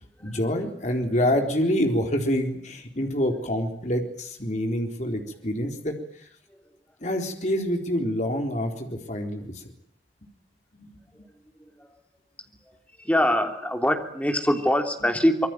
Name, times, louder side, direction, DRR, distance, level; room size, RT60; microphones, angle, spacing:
voice 1, 0.2-6.0 7.0-9.6 10.8-10.9 15.0-15.1, equal, 40° left, 4 dB, 4.0 m, -26 dB
voice 2, 13.0-15.5, equal, 10° left, 5 dB, 3.3 m, -23 dB
25.5 x 23.5 x 9.3 m, 0.64 s
head